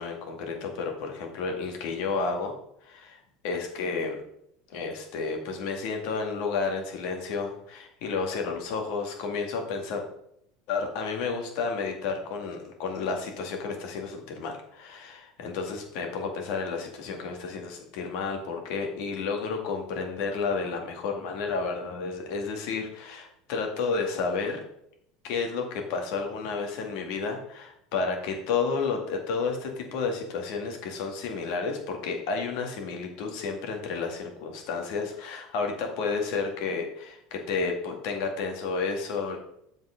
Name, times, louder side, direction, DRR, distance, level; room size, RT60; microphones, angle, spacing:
voice 1, 0.0-2.5 2.8-4.2 4.7-10.0 10.7-24.6 25.2-39.4, left 4 dB, 65° left, 3 dB, 2.0 m, -31 dB
7.8 x 5.3 x 5.0 m, 0.73 s
hypercardioid pair, 80°, 0 cm